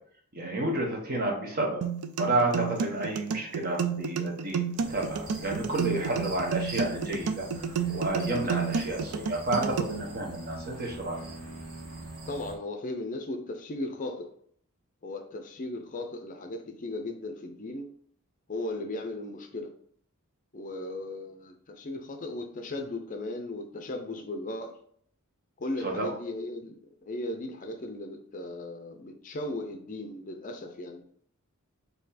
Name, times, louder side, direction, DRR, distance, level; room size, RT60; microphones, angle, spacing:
voice 1, 0.3-1.8 2.2-7.4 7.9-11.2 25.8-26.1, right 2 dB, 45° right, 0 dB, 1.0 m, -30 dB
sound 1, 1.8-9.8, right 6 dB, 90° right, 0.4 m, -31 dB
sound 2, 4.8-12.5, right 1 dB, 65° right, 1.2 m, -43 dB
voice 2, 12.3-14.3 15.0-17.9 18.5-19.7 20.5-24.8 25.6-31.0, left 2 dB, 35° left, 5 dB, 0.5 m, -36 dB
4.4 x 2.8 x 4.1 m, 0.62 s
head